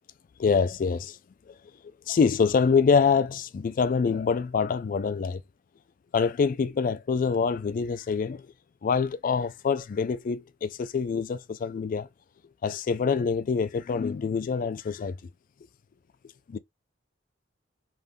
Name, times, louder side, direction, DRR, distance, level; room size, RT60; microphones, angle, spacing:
voice 1, 0.4-1.2 1.5-1.6 2.1-5.4 6.1-8.4 8.8-12.1 12.6-15.2 16.5-16.6, left 5 dB, 45° left, 0.3 m, -25 dB
3.5 x 2.6 x 2.2 m
head